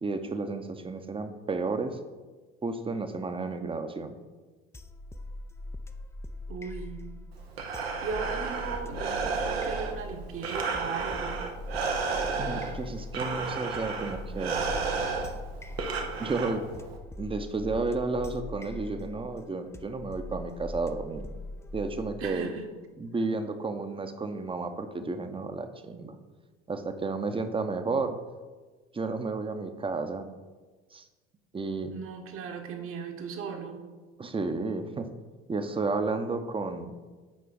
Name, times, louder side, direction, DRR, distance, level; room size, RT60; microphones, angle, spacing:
voice 1, 0.0-2.0 2.6-4.2 12.4-14.6 16.2-16.7 17.2-21.3 21.7-22.5 23.0-26.2 26.7-28.2 28.9-30.3 30.9-31.1 31.5-31.9 34.2-35.1 35.5-37.0, right 3 dB, 15° right, 8 dB, 0.8 m, -32 dB
sound 1, 4.7-22.5, left 2 dB, 10° left, 0.5 m, -42 dB
voice 2, 6.5-7.0 8.0-11.4 22.2-22.7 31.9-33.9, right 5 dB, 45° right, 4 dB, 1.3 m, -37 dB
Breathing, 7.3-17.0, right 4 dB, 80° right, 0.9 m, -32 dB
8.6 x 5.0 x 3.9 m, 1.3 s
figure-of-eight pair, 60°, 30 cm